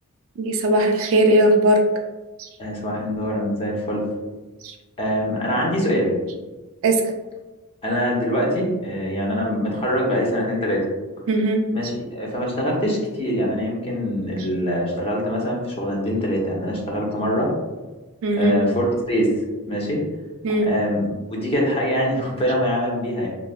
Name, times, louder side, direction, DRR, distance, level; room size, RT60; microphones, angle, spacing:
voice 1, 0.4-1.8 4.6-4.7 6.8-7.0 11.3-11.6 18.2-18.6 20.4-20.7, right 1 dB, 65° right, 4 dB, 0.4 m, -18 dB
voice 2, 2.6-4.0 5.0-6.1 7.8-10.9 11.7-17.5 18.3-19.3 19.7-20.0 20.6-23.3, equal, 25° left, -2 dB, 0.6 m, -24 dB
3.0 x 2.2 x 2.4 m, 1.2 s
head